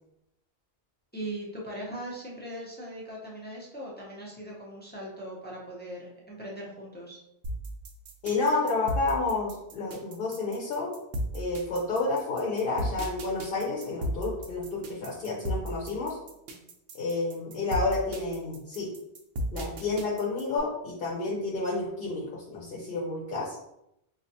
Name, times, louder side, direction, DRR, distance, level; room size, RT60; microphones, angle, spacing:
voice 1, 1.1-7.2, right 1 dB, 10° left, -4 dB, 0.6 m, -40 dB
sound 1, 7.4-20.6, equal, 70° right, 0.8 m, -35 dB
voice 2, 8.2-10.9 11.3-16.2 16.9-18.9 19.5-23.6, left 3 dB, 60° left, -4 dB, 0.9 m, -30 dB
4.3 x 2.4 x 2.7 m, 0.82 s
omnidirectional pair, 1.1 m